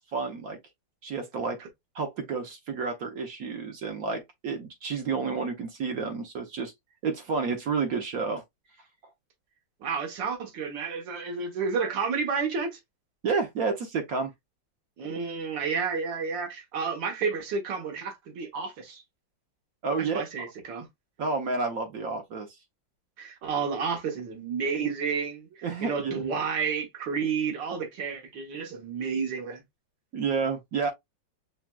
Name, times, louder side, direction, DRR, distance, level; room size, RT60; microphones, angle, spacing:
voice 1, 0.1-0.6 1.0-1.6 1.9-6.7 7.0-8.4 13.2-14.3 19.8-20.3 21.2-22.5 25.6-26.3 30.1-30.9, right 4 dB, 60° right, 1.0 m, -30 dB
voice 2, 9.8-12.8 15.0-19.0 20.1-20.9 23.2-29.6, right 5 dB, 75° right, 1.7 m, -31 dB
5.8 x 2.2 x 2.2 m
omnidirectional pair, 2.0 m